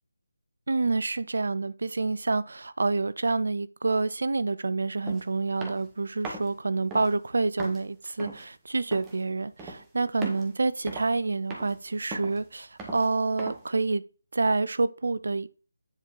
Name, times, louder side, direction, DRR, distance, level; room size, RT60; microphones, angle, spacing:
voice 1, 0.7-14.0 14.3-15.5, right 3 dB, 55° right, 0.6 m, -28 dB
sound 1, 5.0-5.2 5.6-5.9 6.2-6.5 6.9-7.1 7.6-7.8 8.2-8.4 8.9-9.2 9.6-9.8 10.2-10.5 10.9-11.2 11.5-11.8 12.1-12.4 12.8-13.1 13.4-13.7, right 3 dB, 10° right, 1.4 m, -38 dB
9.8 x 4.5 x 3.9 m
figure-of-eight pair, 150°, 0 cm